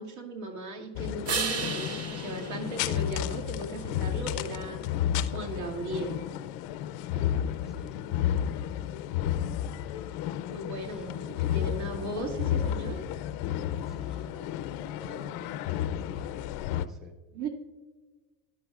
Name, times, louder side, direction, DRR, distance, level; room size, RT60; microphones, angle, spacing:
voice 1, 0.0-4.8 5.3-6.2 10.5-13.0 17.3-17.5, right 2 dB, 70° right, 0 dB, 2.3 m, -37 dB
sound 1, 1.0-16.9, left 10 dB, 55° left, 0.5 m, -32 dB
sound 2, 1.3-3.8 9.6-13.6, right 5 dB, 30° right, 1.0 m, -39 dB
voice 2, 7.1-8.4 10.8-11.3 13.9-14.5 15.0-16.4 16.7-17.1, left 1 dB, ahead, 5 dB, 0.4 m, -50 dB
13.0 x 10.5 x 2.4 m, 1.3 s
supercardioid pair, 140°, 47 cm